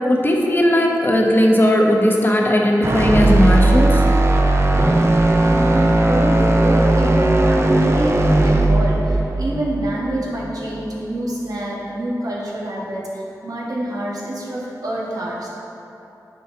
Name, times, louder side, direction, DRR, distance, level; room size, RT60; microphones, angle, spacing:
voice 1, 0.1-4.0, left 1 dB, 30° left, 0 dB, 1.0 m, -16 dB
sound 1, 2.8-11.0, right 2 dB, 40° right, 0.6 m, -17 dB
voice 2, 5.4-9.0 9.4-13.0 13.4-15.5, right 1 dB, 65° right, -5 dB, 1.5 m, -26 dB
9.6 x 4.1 x 3.8 m, 2.8 s
cardioid pair, 45°, 7 cm